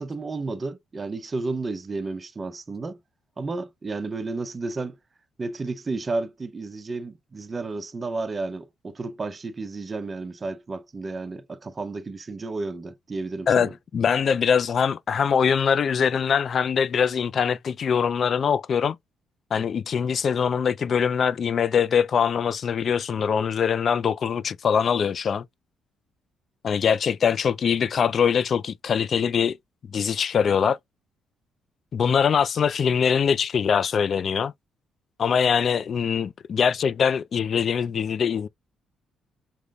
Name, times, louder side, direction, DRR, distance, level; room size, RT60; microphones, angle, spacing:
voice 1, 0.0-3.0 3.4-5.0 5.4-13.7, right 3 dB, 30° right, 0.7 m, -32 dB
voice 2, 13.5-19.0 19.5-25.4 26.6-29.6 29.9-30.8 31.9-34.5 35.2-38.5, left 7 dB, 55° left, 0.4 m, -23 dB
5.1 x 3.1 x 2.4 m
cardioid pair, 90°, 0 cm